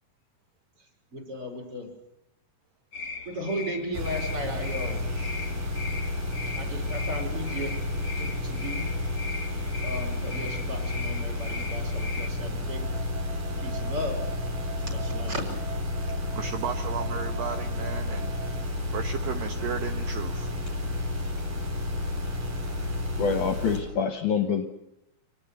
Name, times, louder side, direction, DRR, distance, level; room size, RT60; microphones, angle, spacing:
voice 1, 0.8-1.9 3.3-5.6 6.5-7.8 8.2-8.9 9.8-12.9 13.6-14.2 14.8-15.5, equal, 35° right, 1 dB, 5.5 m, -36 dB
sound 1, 2.9-12.3, left 4 dB, 50° left, 1.6 m, -39 dB
sound 2, 3.9-23.8, left 2 dB, 55° right, 6.5 m, -31 dB
sound 3, 12.6-18.6, right 8 dB, 15° right, 1.7 m, -44 dB
voice 2, 16.3-20.5 20.8-21.1, right 8 dB, 70° right, 6 dB, 2.4 m, -35 dB
voice 3, 23.2-24.7, left 6 dB, 65° left, 6 dB, 2.1 m, -26 dB
25.5 x 19.0 x 8.3 m, 0.87 s
omnidirectional pair, 4.7 m